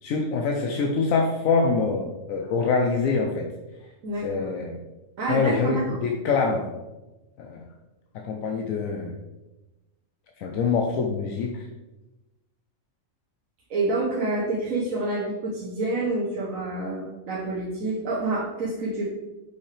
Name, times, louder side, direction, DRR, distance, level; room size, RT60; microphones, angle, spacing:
voice 1, 0.0-3.5 4.2-4.8 5.3-6.7 7.4-7.6 8.2-9.1 10.4-11.7, left 4 dB, 80° left, 1 dB, 1.1 m, -25 dB
voice 2, 4.0-4.6 5.2-6.0 13.7-19.1, right 2 dB, 80° right, -4 dB, 1.4 m, -28 dB
6.2 x 5.6 x 3.3 m, 1.1 s
omnidirectional pair, 1.4 m